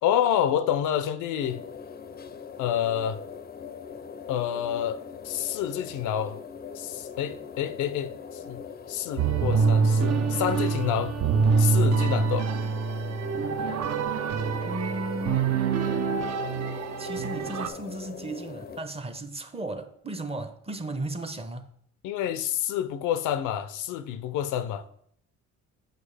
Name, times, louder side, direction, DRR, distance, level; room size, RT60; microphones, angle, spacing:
voice 1, 0.0-1.6 2.6-3.2 4.3-5.0 5.2-6.4 6.8-8.6 8.9-11.1 11.6-12.5 22.0-24.8, left 10 dB, 85° left, 0.5 m, -28 dB
sound 1, 1.4-18.8, left 6 dB, 30° left, 0.4 m, -42 dB
sound 2, 9.2-17.7, right 5 dB, 60° right, 0.6 m, -25 dB
voice 2, 14.6-15.6 17.0-21.7, right 2 dB, 20° right, 0.6 m, -35 dB
6.6 x 5.1 x 3.3 m
cardioid pair, 90°, 30 cm